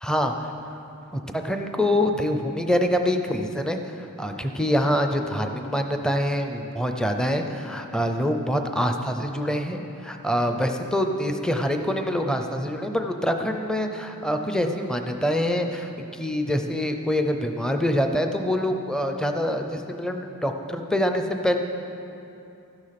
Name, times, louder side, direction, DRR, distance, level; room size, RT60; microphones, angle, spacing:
voice 1, 0.0-0.5 1.1-21.6, equal, 5° left, 5 dB, 0.6 m, -25 dB
13.5 x 9.6 x 5.9 m, 2.8 s
head